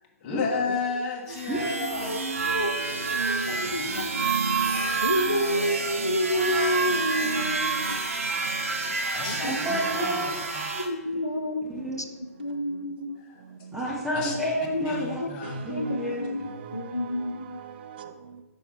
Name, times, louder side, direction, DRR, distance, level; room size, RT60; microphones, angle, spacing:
voice 1, 0.2-2.1 3.4-4.1 9.1-10.2 10.5-10.7 14.1-14.3 14.8-15.9 16.7-16.8, left 4 dB, 35° left, 1.2 m, -33 dB
sound 1, 1.3-10.9, right 4 dB, 60° right, 0.9 m, -28 dB
voice 2, 2.0-4.2 4.6-4.7 5.0-8.0 9.2-9.6 10.0-10.1 10.7-11.7 12.4-13.1 14.7-15.3 15.7-17.6, left 1 dB, 90° left, 0.6 m, -30 dB
voice 3, 9.4-10.3 11.6-12.1 13.7-15.2 15.6-16.4, equal, 5° right, 0.9 m, -30 dB
voice 4, 15.4-18.4, right 8 dB, 40° right, 0.5 m, -43 dB
8.3 x 5.6 x 3.1 m
figure-of-eight pair, 125°, 9 cm